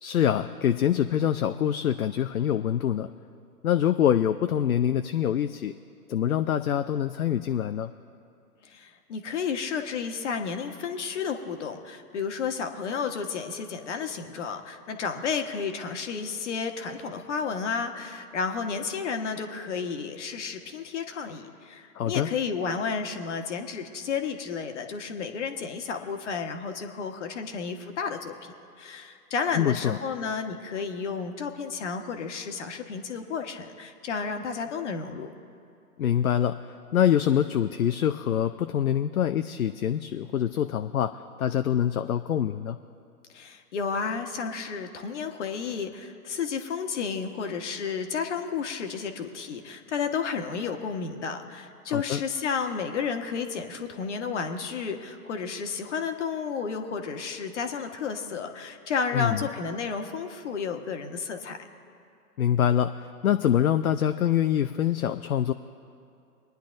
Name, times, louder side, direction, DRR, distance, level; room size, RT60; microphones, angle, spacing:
voice 1, 0.0-3.1 3.6-5.7 6.1-7.9 22.0-22.3 29.5-30.0 36.0-36.6 36.9-41.1 41.4-42.8 51.9-52.2 59.1-59.4 62.4-65.5, left 10 dB, 65° left, 9 dB, 0.6 m, -25 dB
voice 2, 8.6-35.3 43.3-61.6, left 5 dB, 50° left, 6 dB, 1.3 m, -32 dB
25.5 x 10.0 x 2.6 m, 2.5 s
figure-of-eight pair, 135°, 47 cm